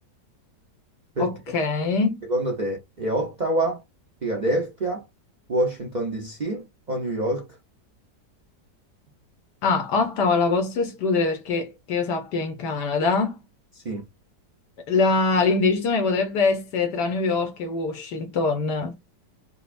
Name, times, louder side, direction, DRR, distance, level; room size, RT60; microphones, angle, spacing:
voice 1, 1.2-2.2 9.6-13.4 14.9-18.9, left 4 dB, 75° left, 1.3 m, -23 dB
voice 2, 2.3-3.8 4.2-5.0 5.5-7.5 13.8-14.0, right 1 dB, 55° right, 0.4 m, -26 dB
5.4 x 2.0 x 2.5 m
omnidirectional pair, 1.8 m